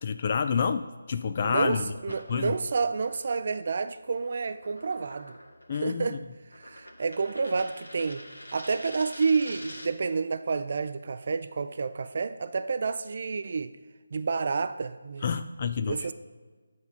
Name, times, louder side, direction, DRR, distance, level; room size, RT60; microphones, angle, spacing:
voice 1, 0.0-1.9 2.3-2.5 5.7-6.2 15.2-16.1, left 6 dB, 35° left, 0.3 m, -28 dB
voice 2, 1.4-5.4 5.7-6.2 6.6-8.2 8.5-13.8 14.1-15.4 15.8-16.1, right 4 dB, 45° right, 0.3 m, -29 dB
sound 1, 2.0-10.1, left 1 dB, 85° left, 1.9 m, -47 dB
9.3 x 3.9 x 5.7 m
figure-of-eight pair, 155°, 0 cm